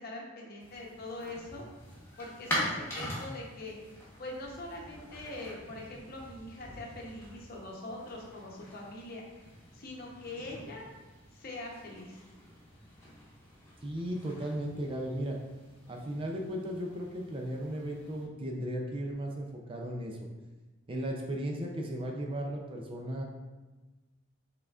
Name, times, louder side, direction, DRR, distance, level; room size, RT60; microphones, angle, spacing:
voice 1, 0.0-1.6 2.2-3.8 4.2-10.9 11.3-12.2, left 2 dB, 45° left, -1 dB, 0.8 m, -43 dB
sound 1, 0.6-18.2, equal, 10° left, 1.1 m, -44 dB
voice 2, 13.8-15.4 15.9-20.2 20.9-23.2, equal, 25° right, 0 dB, 0.4 m, -36 dB
5.5 x 3.7 x 2.4 m, 1.2 s
head